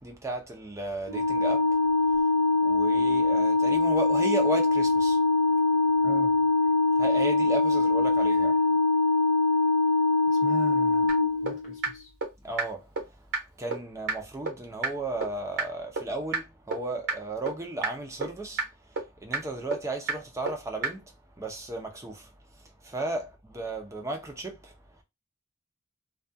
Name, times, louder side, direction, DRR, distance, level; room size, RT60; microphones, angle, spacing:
voice 1, 0.0-1.8 2.2-2.3 2.6-5.2 6.9-8.8 12.4-12.9 13.6-24.7, right 2 dB, 15° right, 0.6 m, -35 dB
Organ, 1.1-11.9, left 3 dB, 85° right, 0.6 m, -23 dB
voice 2, 6.0-6.3 10.3-11.1 11.4-12.1, left 2 dB, 40° left, 0.5 m, -39 dB
sound 1, 11.1-11.2 11.5-11.6 11.8-11.9 12.2-12.3 12.6-12.7 13.0-13.1 13.3-13.4 13.7-13.8 14.1-14.2 14.5-14.6 14.8-14.9 15.2-15.3 15.6-15.7 16.0-16.1 16.3-16.4 16.7-16.8 17.1-17.2 17.5-17.6 17.8-17.9 18.2-18.3 18.6-18.7 19.0-19.1 19.3-19.4 19.7-19.8 20.1-20.2 20.5-20.6 20.8-20.9, right 4 dB, 65° right, 1.0 m, -27 dB
2.3 x 2.3 x 2.6 m
head